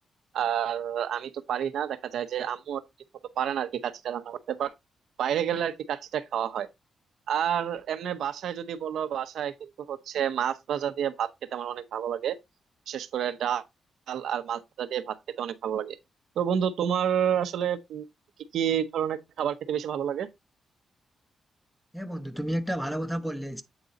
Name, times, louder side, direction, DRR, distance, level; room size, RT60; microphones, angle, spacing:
voice 1, 0.3-2.8 3.4-4.7 5.2-6.7 7.3-12.4 12.9-13.6 14.1-16.0 16.4-18.1 18.5-20.3, right 9 dB, 85° right, 0.7 m, -29 dB
voice 2, 21.9-23.6, equal, ahead, 0.6 m, -31 dB
8.0 x 3.8 x 4.0 m
wide cardioid pair, 150°, 0 cm